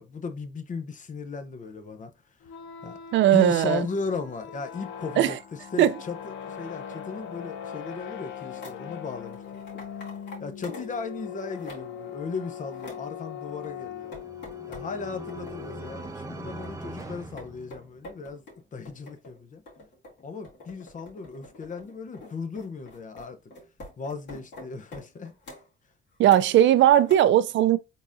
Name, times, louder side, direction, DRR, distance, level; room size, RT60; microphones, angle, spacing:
voice 1, 0.0-2.1 2.8-3.0 3.3-9.4 9.7-9.8 10.4-14.2 14.7-18.4 18.7-19.6 20.2-23.4 24.0-25.3, left 4 dB, 40° left, 0.7 m, -36 dB
sound 1, 2.4-16.2, left 8 dB, 80° left, 0.7 m, -40 dB
voice 2, 3.1-3.9 5.2-5.4 5.8-5.9 26.2-27.8, right 11 dB, 70° right, 0.4 m, -18 dB
sound 2, 8.5-8.8 9.2-11.0 11.3-12.0 12.4-13.1 13.6-14.9 15.3-16.2 16.6-25.7 26.2-26.7 27.0-27.2, left 2 dB, 65° left, 2.3 m, -46 dB
sound 3, 13.7-18.3, right 2 dB, 15° right, 0.7 m, -42 dB
4.0 x 3.6 x 2.5 m
cardioid pair, 90°, 20 cm